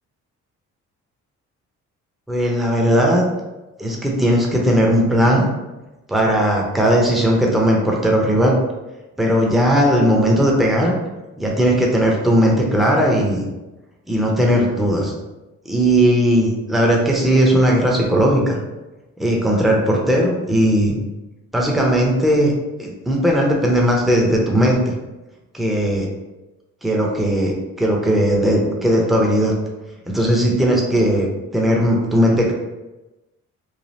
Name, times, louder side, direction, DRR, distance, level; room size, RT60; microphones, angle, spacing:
voice 1, 2.3-3.2 3.8-5.5 6.1-8.6 9.2-10.9 11.4-13.4 14.1-15.1 15.7-18.6 19.2-21.0 21.5-22.5 22.8-24.9 25.5-26.1 26.8-29.5 30.1-32.5, equal, ahead, -2 dB, 0.6 m, -17 dB
3.1 x 2.3 x 2.7 m, 1.0 s
cardioid pair, 90°, 30 cm